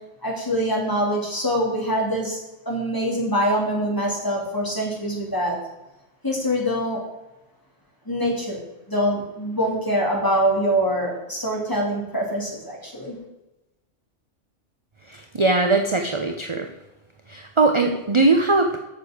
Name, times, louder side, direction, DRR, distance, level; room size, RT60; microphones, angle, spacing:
voice 1, 0.2-2.4 2.6-5.6 6.2-7.0 8.1-8.6 8.9-13.2, equal, 15° left, -2 dB, 3.0 m, -24 dB
voice 2, 15.3-16.6 17.3-18.8, right 3 dB, 30° right, 5 dB, 0.7 m, -20 dB
8.1 x 6.8 x 8.0 m, 0.99 s
omnidirectional pair, 1.3 m